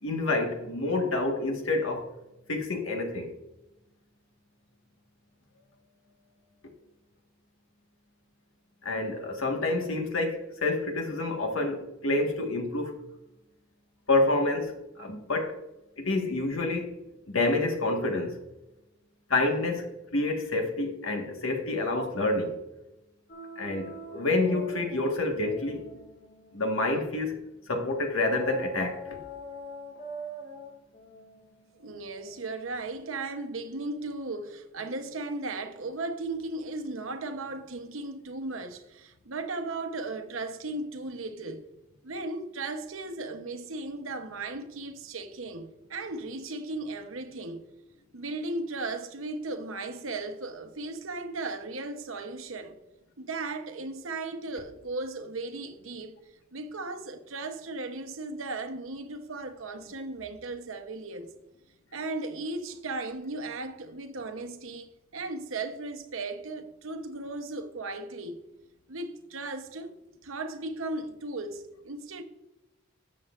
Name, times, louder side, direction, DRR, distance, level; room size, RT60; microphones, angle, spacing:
voice 1, 0.0-2.1 2.5-3.3 8.8-13.0 14.1-15.6 16.0-16.9 17.3-18.4 19.3-22.6 23.6-25.8 26.5-29.0, left 2 dB, 75° left, 1.6 m, -28 dB
sound 1, 23.3-27.5 28.2-33.0, equal, 55° left, 1.9 m, -44 dB
voice 2, 31.8-41.6 42.0-47.6 48.1-52.8 53.2-56.2 56.5-61.3 61.9-68.4 68.9-69.9 70.2-72.2, right 2 dB, 75° right, 0.9 m, -36 dB
13.0 x 7.6 x 2.5 m
head